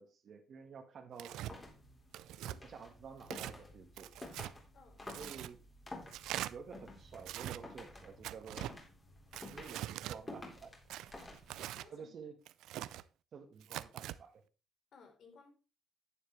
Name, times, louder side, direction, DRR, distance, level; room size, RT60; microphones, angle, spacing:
voice 1, 0.0-1.4 2.6-4.4 5.1-5.6 6.5-8.7 9.4-10.8 11.9-12.3 13.3-14.4, right 6 dB, 60° right, 5 dB, 1.5 m, -51 dB
Tearing, 1.2-1.5 2.1-2.6 3.2-3.6 4.0-4.5 5.1-5.5 6.1-6.5 7.2-7.6 8.2-8.7 9.3-10.2 10.9-11.9 12.5-13.0 13.6-14.2, right 13 dB, 90° right, 0.5 m, -43 dB
sound 1, 1.3-11.8, left 2 dB, 25° left, 3.6 m, -52 dB
voice 2, 4.7-5.1 11.6-12.1 14.9-15.5, left 5 dB, 65° left, 4 dB, 3.7 m, -60 dB
10.5 x 9.3 x 3.2 m, 0.31 s
cardioid pair, 90°, 0 cm